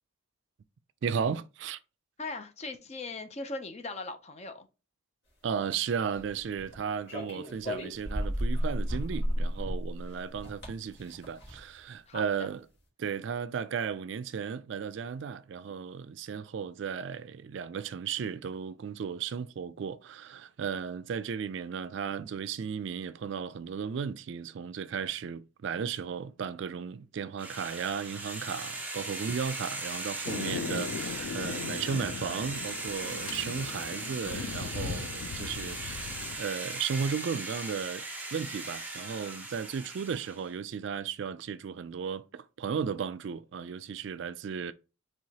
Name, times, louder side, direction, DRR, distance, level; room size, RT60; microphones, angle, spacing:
voice 1, 1.0-1.8 5.4-12.6 13.0-44.7, right 6 dB, 60° right, 0.3 m, -35 dB
voice 2, 2.2-4.7 12.1-12.5, left 3 dB, 30° left, 0.6 m, -39 dB
sound 1, 6.1-6.8 7.1-11.8, equal, 55° left, 2.1 m, -33 dB
sound 2, 27.4-40.4, right 2 dB, 10° right, 0.8 m, -38 dB
Thunder, 30.2-36.4, left 5 dB, 80° left, 0.4 m, -38 dB
4.7 x 3.3 x 2.8 m
head